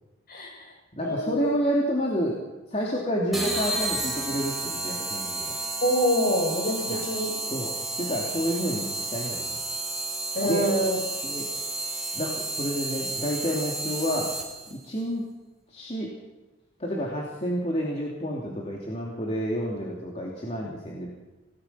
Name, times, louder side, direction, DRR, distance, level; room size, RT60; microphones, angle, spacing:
voice 1, 0.3-0.7 1.0-1.5 5.8-7.3 10.3-11.0, equal, 45° left, 1 dB, 6.8 m, -26 dB
voice 2, 1.0-2.4 2.7-5.6 6.9-7.0 7.5-9.6 10.5-10.7 11.2-11.5 12.1-14.3 14.7-15.2 15.7-16.1 16.8-21.1, equal, 30° left, -2 dB, 2.9 m, -29 dB
sound 1, 3.3-14.7, right 2 dB, ahead, 4.4 m, -32 dB
27.0 x 18.0 x 5.8 m, 1.1 s
head